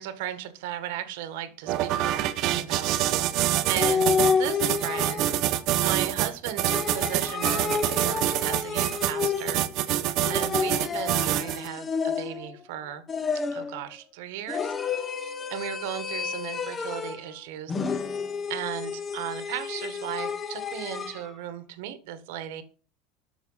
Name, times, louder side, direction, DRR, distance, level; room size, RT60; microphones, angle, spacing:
voice 1, 0.0-9.6 10.3-13.0 13.5-18.0 18.5-22.6, right 11 dB, 65° right, 12 dB, 1.6 m, -36 dB
sound 1, 1.7-11.7, right 13 dB, 40° right, 0.9 m, -26 dB
sound 2, 3.8-5.5 6.7-9.8 10.2-12.6 13.1-13.8 14.5-17.3 17.7-21.2, left 6 dB, 15° left, 0.8 m, -30 dB
13.0 x 6.2 x 5.7 m, 0.38 s
supercardioid pair, 175°, 0 cm